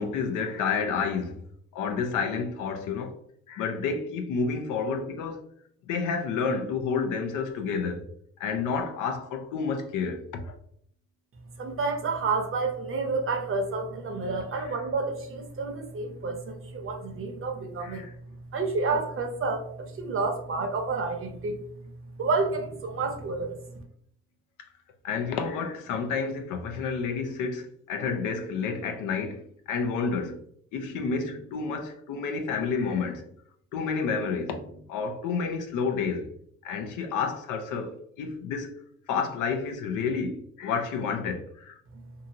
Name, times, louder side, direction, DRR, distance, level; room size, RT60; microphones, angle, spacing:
voice 1, 0.0-1.4 1.7-3.2 3.5-5.4 5.9-8.0 8.4-10.5 14.5-14.8 17.8-18.1 22.9-23.0 25.0-30.4 30.7-33.3 33.7-36.3 36.6-38.7 39.1-41.8, left 5 dB, 85° left, 0.6 m, -30 dB
voice 2, 11.6-18.0 18.5-21.6 22.2-23.8, right 3 dB, 45° right, 0.8 m, -30 dB
2.8 x 2.4 x 2.8 m
cardioid pair, 90°, 30 cm